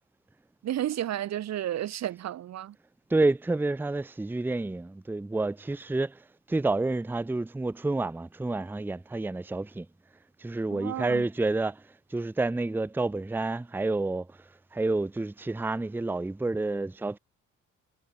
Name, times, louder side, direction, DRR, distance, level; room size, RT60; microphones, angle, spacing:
voice 1, 0.6-2.8 10.7-11.2, right 12 dB, 60° right, 0.9 m, -32 dB
voice 2, 3.1-9.9 10.4-17.2, right 2 dB, 5° right, 0.6 m, -29 dB
cardioid pair, 90°, 30 cm